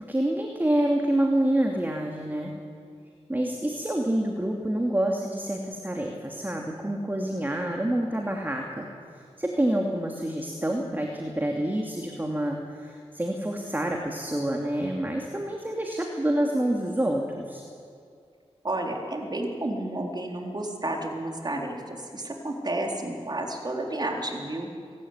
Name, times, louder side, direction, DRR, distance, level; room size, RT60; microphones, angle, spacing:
voice 1, 0.0-2.5 3.3-8.9 9.4-17.6, right 1 dB, 15° right, 1 dB, 2.6 m, -27 dB
voice 2, 18.6-24.7, right 1 dB, 35° right, 1 dB, 3.9 m, -31 dB
24.5 x 13.5 x 9.6 m, 2.3 s
cardioid pair, 60°, 11 cm